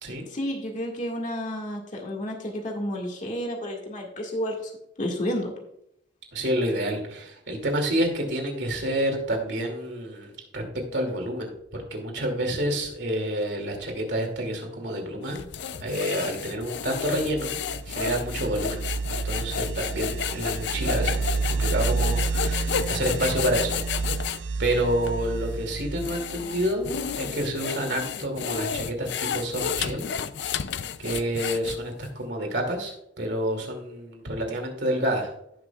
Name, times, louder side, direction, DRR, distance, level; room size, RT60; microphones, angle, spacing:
voice 1, 0.3-4.6 5.0-5.5, equal, 45° left, 0 dB, 1.9 m, -31 dB
voice 2, 6.3-15.5 15.8-17.6 17.9-18.8 19.1-23.8 24.1-24.3 24.6-30.1 31.0-35.3, right 1 dB, 70° right, 2 dB, 2.5 m, -29 dB
sound 1, 15.3-24.4 25.0-25.2 25.8-32.1, left 7 dB, 65° left, 0.4 m, -32 dB
sound 2, 17.0-27.5, right 4 dB, 90° right, 0.4 m, -30 dB
17.5 x 6.2 x 2.4 m, 0.77 s
head